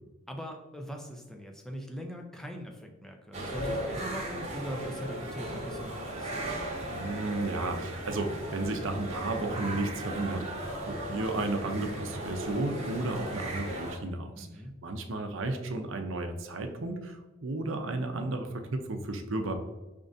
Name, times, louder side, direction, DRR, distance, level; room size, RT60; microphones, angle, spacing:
voice 1, 0.3-6.4 14.3-14.7, equal, ahead, 2 dB, 0.5 m, -41 dB
sound 1, 3.3-14.0, right 1 dB, 30° right, 1.1 m, -37 dB
voice 2, 6.9-10.6 10.9-14.5 14.8-19.5, right 2 dB, 65° right, 5 dB, 0.6 m, -33 dB
5.2 x 3.7 x 2.6 m, 1.1 s
head